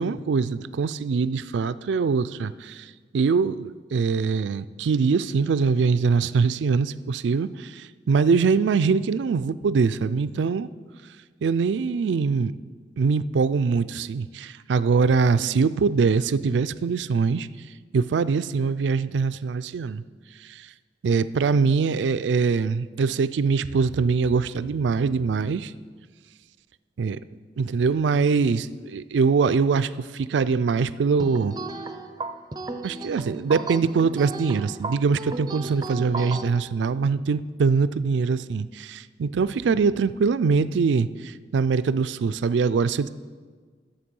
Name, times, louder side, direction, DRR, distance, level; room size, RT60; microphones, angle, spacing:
voice 1, 0.0-10.7 11.4-12.5 13.0-17.5 17.9-20.0 20.4-20.7 21.0-25.7 27.0-27.2 27.6-31.6 32.8-43.1, right 5 dB, 80° right, 15 dB, 0.4 m, -23 dB
sound 1, 31.2-36.5, right 3 dB, 25° right, 0.5 m, -34 dB
11.5 x 7.2 x 5.3 m, 1.5 s
head